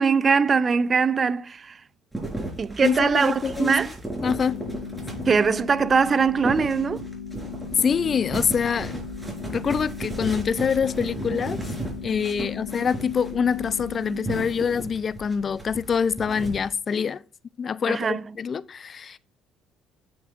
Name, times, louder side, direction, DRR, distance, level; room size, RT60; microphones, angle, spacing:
voice 1, 0.0-1.8 2.6-3.9 5.3-7.1 17.9-18.2, right 5 dB, 40° right, 0.5 m, -21 dB
sound 1, 2.1-16.7, right 1 dB, 10° right, 4.4 m, -35 dB
voice 2, 2.8-3.7 4.2-4.6 7.8-9.0 9.4-11.6 12.0-17.2 17.6-19.2, left 6 dB, 45° left, 0.4 m, -25 dB
sound 2, 4.5-14.5, left 7 dB, 75° left, 1.1 m, -38 dB
9.1 x 7.6 x 2.5 m
hypercardioid pair, 60°, 0 cm